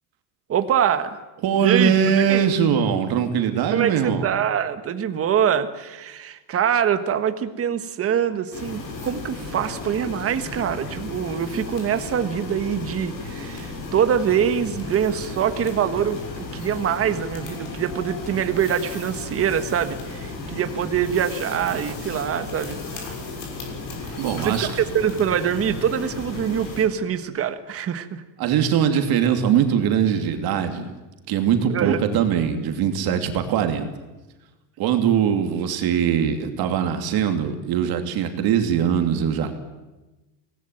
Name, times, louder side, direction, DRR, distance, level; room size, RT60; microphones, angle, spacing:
voice 1, 0.5-1.2 1.6-2.5 3.7-23.1 24.4-24.7 24.9-28.2 31.7-32.0, right 8 dB, 30° right, 10 dB, 1.5 m, -24 dB
voice 2, 1.4-4.3 24.2-24.7 28.4-30.9 31.3-33.9 34.8-39.5, right 8 dB, 50° right, 6 dB, 2.8 m, -21 dB
sound 1, 8.5-26.8, left 3 dB, 45° left, 6.3 m, -34 dB
24.5 x 18.5 x 9.1 m, 1.1 s
cardioid pair, 165°, 47 cm